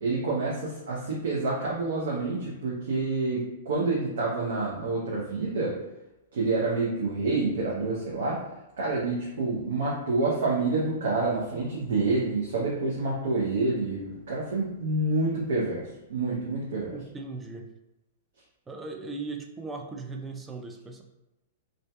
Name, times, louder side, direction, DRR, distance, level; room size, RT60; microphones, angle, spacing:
voice 1, 0.0-5.8 6.3-8.4 8.8-17.0, right 3 dB, 70° right, -5 dB, 0.6 m, -28 dB
voice 2, 16.9-17.7 18.7-21.0, right 3 dB, 15° right, 3 dB, 0.3 m, -38 dB
2.5 x 2.2 x 2.2 m, 0.97 s
hypercardioid pair, 115°, 0 cm